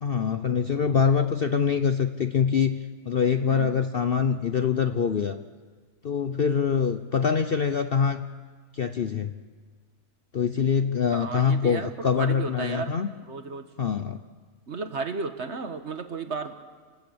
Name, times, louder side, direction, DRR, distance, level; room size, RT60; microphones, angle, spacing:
voice 1, 0.0-2.8 3.0-5.4 6.0-8.2 8.7-9.3 10.3-13.1 13.8-14.2, left 6 dB, 50° left, 9 dB, 0.7 m, -24 dB
voice 2, 11.1-13.0 13.3-13.7 14.7-16.5, right 4 dB, 50° right, 9 dB, 1.4 m, -33 dB
29.5 x 14.0 x 8.7 m, 1.5 s
omnidirectional pair, 1.6 m